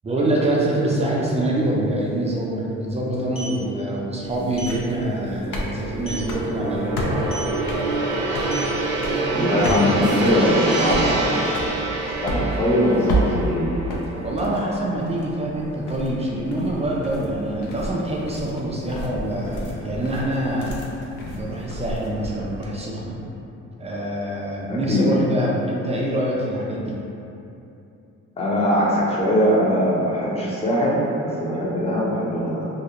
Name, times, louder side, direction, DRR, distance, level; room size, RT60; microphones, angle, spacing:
voice 1, 0.0-7.4 14.2-20.8 21.3-23.2 23.8-27.0, right 1 dB, 20° right, -4 dB, 0.4 m, -25 dB
sound 1, 1.5-1.6 1.9-2.1 3.1-3.6 4.5-4.8 5.2-5.4 5.7-5.8 6.1-6.3 7.2-7.6 8.4-8.7 9.6-9.9 10.5-11.8, right 1 dB, 45° left, 0.9 m, -35 dB
Gong, 3.7-16.1 16.5-16.7, right 2 dB, 80° right, 0.5 m, -27 dB
sound 2, 4.2-22.7, equal, 75° left, 0.5 m, -31 dB
voice 2, 9.3-11.3 12.2-13.7 24.7-25.1 28.4-32.6, equal, 20° left, -7 dB, 0.6 m, -21 dB
2.4 x 2.0 x 2.9 m, 2.8 s
cardioid pair, 90°, 30 cm